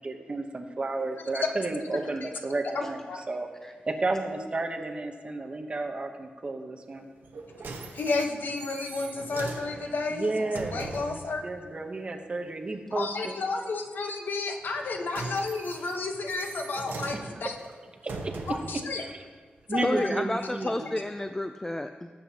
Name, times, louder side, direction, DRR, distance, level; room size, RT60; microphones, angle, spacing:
voice 1, 0.0-3.0 3.3-3.5 3.9-7.1 10.1-10.8 11.4-13.4 18.0-19.2 19.7-20.9, right 2 dB, 35° right, 4 dB, 0.9 m, -32 dB
voice 2, 2.7-3.2 7.9-11.4 12.9-17.5 18.5-19.0 19.7-20.1 21.0-21.1, left 3 dB, 70° left, 3 dB, 1.1 m, -32 dB
sound 1, 7.2-11.3 14.7-18.8 19.6-19.7, right 3 dB, 90° right, 1.1 m, -40 dB
voice 3, 19.8-22.1, left 1 dB, 15° left, 7 dB, 0.3 m, -31 dB
18.0 x 7.7 x 2.9 m, 1.5 s
wide cardioid pair, 145°, 3 cm